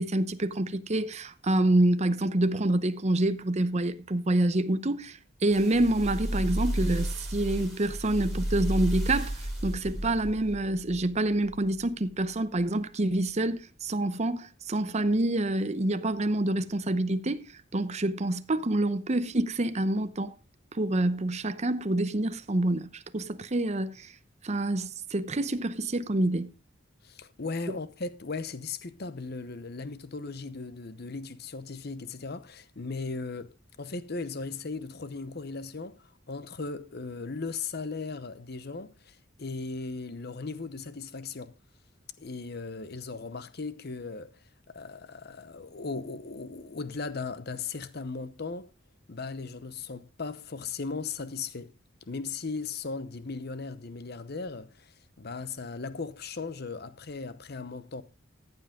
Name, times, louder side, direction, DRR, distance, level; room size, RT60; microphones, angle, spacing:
voice 1, 0.0-20.3 20.7-24.1 24.4-26.5 27.7-27.8, right 1 dB, 35° right, 0.8 m, -27 dB
sound 1, 5.5-12.0 12.5-12.6, right 1 dB, ahead, 6.5 m, -33 dB
voice 2, 27.0-33.5 33.8-41.5 42.2-44.3 44.7-48.7 49.1-51.7 52.1-58.0, left 4 dB, 55° left, 0.9 m, -37 dB
14.5 x 8.0 x 3.6 m
head